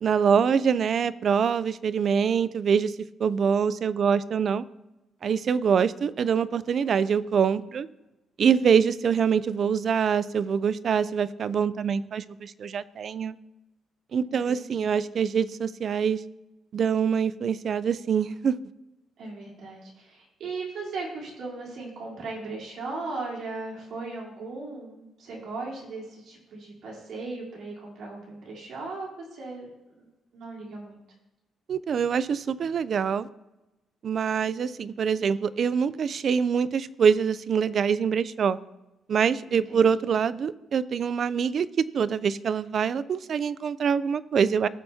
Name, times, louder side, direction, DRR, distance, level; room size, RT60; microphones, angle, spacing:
voice 1, 0.0-4.6 5.2-7.9 8.4-13.4 14.1-16.2 16.7-18.6 31.7-33.3 34.0-38.6 39.1-44.7, right 7 dB, 50° right, 17 dB, 0.4 m, -24 dB
voice 2, 14.2-15.1 19.2-29.7 30.0-30.1 30.3-31.0 39.5-40.1, right 3 dB, 70° right, -4 dB, 3.5 m, -38 dB
15.5 x 5.7 x 2.8 m, 0.99 s
cardioid pair, 110°, 0 cm